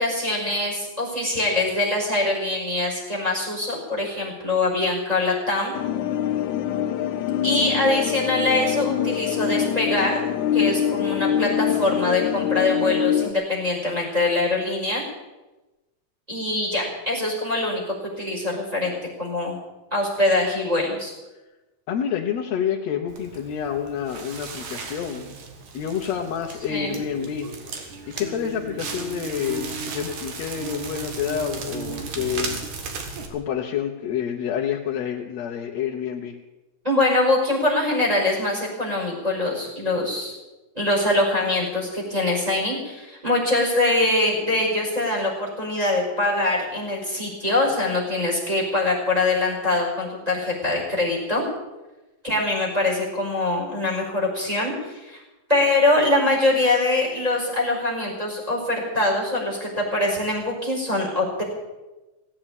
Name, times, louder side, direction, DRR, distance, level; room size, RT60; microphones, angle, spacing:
voice 1, 0.0-5.8 7.4-10.2 10.5-15.0 16.3-19.6 19.9-21.1 26.7-27.0 36.8-40.4 40.7-51.4 52.2-55.2 55.5-61.4, left 2 dB, 10° right, -2 dB, 5.2 m, -23 dB
sound 1, 5.7-13.3, left 9 dB, 90° left, 2.3 m, -24 dB
voice 2, 21.9-25.4 25.7-27.5 28.1-32.6 33.3-36.4, left 8 dB, 70° left, 0 dB, 2.1 m, -28 dB
Crackle, 23.1-33.3, right 4 dB, 85° right, 3.1 m, -35 dB
17.5 x 8.7 x 8.9 m, 1.1 s
omnidirectional pair, 3.3 m